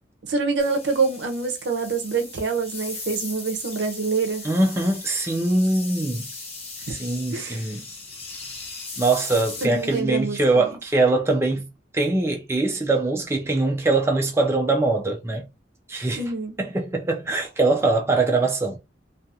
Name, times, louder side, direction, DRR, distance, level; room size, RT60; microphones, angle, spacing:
voice 1, 0.2-4.5 6.9-7.0 7.3-7.7 9.6-10.4 16.2-16.6, right 4 dB, 75° right, 0.6 m, -26 dB
sound 1, 0.6-10.0, left 3 dB, 35° left, 1.0 m, -38 dB
voice 2, 4.4-6.3 6.9-7.9 9.0-11.7 11.9-15.5 15.9-16.2 16.6-18.8, right 2 dB, 15° right, 0.4 m, -22 dB
2.4 x 2.3 x 2.7 m
head